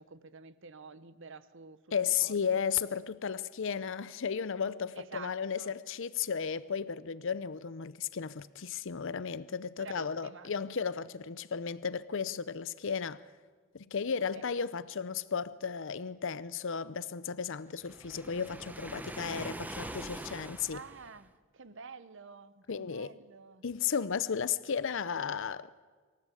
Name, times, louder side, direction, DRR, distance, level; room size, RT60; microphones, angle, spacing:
voice 1, 0.0-2.3 5.0-5.7 9.8-10.5 14.3-14.4 20.7-23.6, right 5 dB, 65° right, 1.1 m, -49 dB
voice 2, 1.9-13.2 13.7-20.8 22.7-23.1 23.6-25.7, left 6 dB, 65° left, 0.6 m, -34 dB
Waves surf, 17.8-21.3, right 1 dB, 10° right, 1.1 m, -43 dB
25.5 x 15.0 x 8.3 m
head